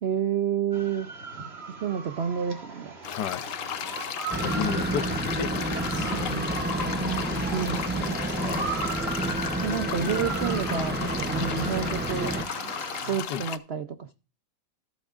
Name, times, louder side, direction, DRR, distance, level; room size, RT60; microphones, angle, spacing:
voice 1, 0.0-1.1 1.8-2.9 5.9-6.5 6.9-8.1 9.6-12.4 13.1-14.1, right 8 dB, 75° right, 0.5 m, -30 dB
sound 1, 0.7-13.2, right 4 dB, 35° right, 1.8 m, -38 dB
sound 2, 3.0-13.6, left 9 dB, 60° left, 0.9 m, -35 dB
voice 2, 3.1-3.4 4.4-6.3 8.4-8.7 13.3-13.4, left 8 dB, 75° left, 1.3 m, -33 dB
sound 3, 4.3-12.4, right 2 dB, 15° right, 0.3 m, -30 dB
14.5 x 8.6 x 2.5 m
omnidirectional pair, 1.9 m